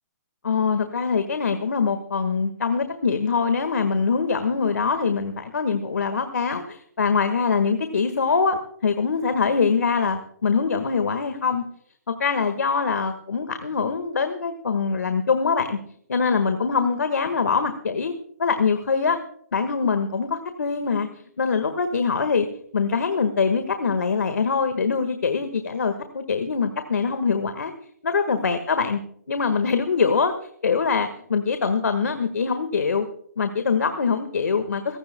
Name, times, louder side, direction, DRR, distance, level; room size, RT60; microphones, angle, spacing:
voice 1, 0.4-11.6 12.1-15.8 16.1-18.1 18.4-19.2 19.5-22.5 22.7-27.7 28.0-29.0 29.3-30.3 30.6-33.1 33.4-35.0, left 5 dB, 85° left, 8 dB, 1.7 m, -23 dB
25.0 x 16.5 x 2.3 m, 0.64 s
hypercardioid pair, 155°, 9 cm